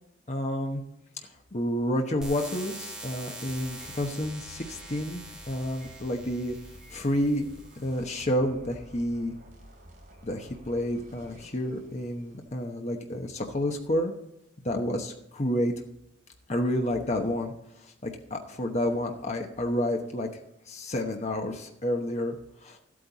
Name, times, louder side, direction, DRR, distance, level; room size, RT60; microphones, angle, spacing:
voice 1, 0.3-0.8 1.5-6.6 6.9-7.5 7.8-9.3 10.2-14.1 14.6-15.7 16.5-17.5 17.8-20.3 20.7-22.4 22.6-22.8, left 1 dB, 35° left, 3 dB, 1.0 m, -30 dB
sound 1, 2.2-8.2, right 1 dB, 5° right, 1.5 m, -44 dB
sound 2, 3.5-12.5, right 1 dB, 50° right, 3.0 m, -51 dB
13.5 x 8.6 x 4.1 m, 0.81 s
head